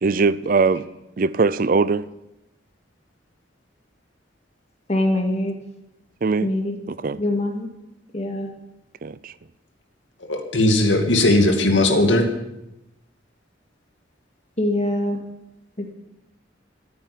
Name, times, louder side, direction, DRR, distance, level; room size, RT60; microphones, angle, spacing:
voice 1, 0.0-0.9 1.2-2.1 5.3-5.4 6.2-6.5 6.9-7.2 9.0-9.3, right 4 dB, 50° right, 0.5 m, -21 dB
voice 2, 4.9-5.5 6.4-6.8 7.2-7.7 8.1-8.5 14.6-15.2 15.8-15.9, left 1 dB, 35° left, 2.3 m, -23 dB
voice 3, 10.3-12.3, left 1 dB, 85° left, 2.3 m, -18 dB
14.0 x 9.6 x 8.6 m
head